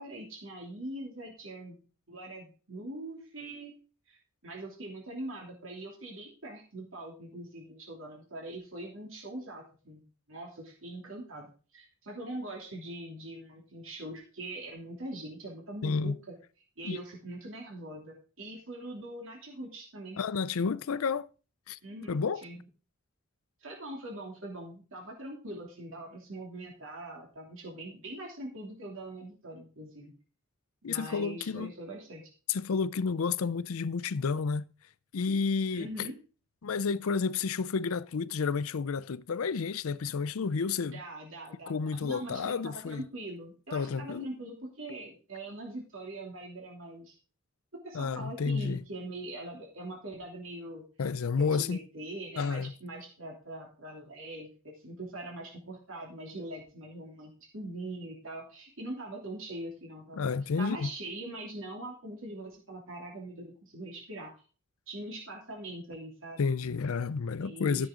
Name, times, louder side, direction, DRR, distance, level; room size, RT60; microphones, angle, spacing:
voice 1, 0.0-1.8 2.1-3.8 4.1-4.2 4.4-10.0 10.3-16.4 16.8-20.2 21.8-22.6 23.6-30.1 30.8-32.2 35.7-36.2 40.8-41.7 42.0-47.1 47.8-50.8 51.4-64.3 64.9-66.5 67.4-67.9, right 1 dB, 65° right, 2.9 m, -42 dB
voice 2, 15.8-16.2 16.8-17.0 20.2-21.3 21.7-21.8 22.1-22.4 30.8-31.7 32.5-34.6 35.1-36.1 36.6-41.0 41.7-43.0 43.7-44.3 47.9-48.8 51.0-51.8 52.4-52.7 60.2-60.9 66.4-67.9, left 5 dB, 80° left, 0.5 m, -30 dB
13.5 x 7.5 x 3.8 m
head